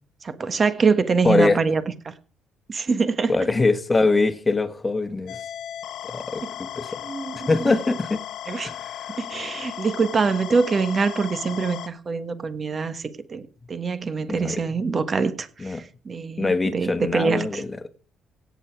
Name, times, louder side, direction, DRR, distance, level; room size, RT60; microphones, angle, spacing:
voice 1, 0.2-2.1 2.7-3.5 6.4-6.5 7.0-7.7 8.5-8.7 9.2-17.6, right 4 dB, 30° right, 1.5 m, -24 dB
voice 2, 1.2-1.6 3.3-5.4 6.1-7.0 7.5-8.2 8.6-9.1 14.3-14.6 15.6-15.8 16.4-17.7, left 3 dB, 15° left, 1.5 m, -23 dB
sound 1, 5.3-11.9, left 11 dB, 70° left, 0.8 m, -36 dB
17.0 x 8.3 x 4.7 m
cardioid pair, 130°, 0 cm